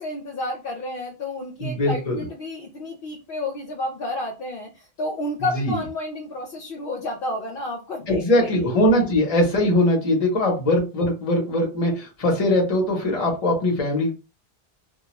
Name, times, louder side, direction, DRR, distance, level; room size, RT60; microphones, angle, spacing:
voice 1, 0.0-9.1, left 2 dB, 65° left, 1 dB, 0.7 m, -31 dB
voice 2, 1.6-2.2 5.5-5.8 8.1-14.2, left 1 dB, 40° left, 1 dB, 0.9 m, -21 dB
2.3 x 2.2 x 3.0 m, 0.31 s
omnidirectional pair, 1.0 m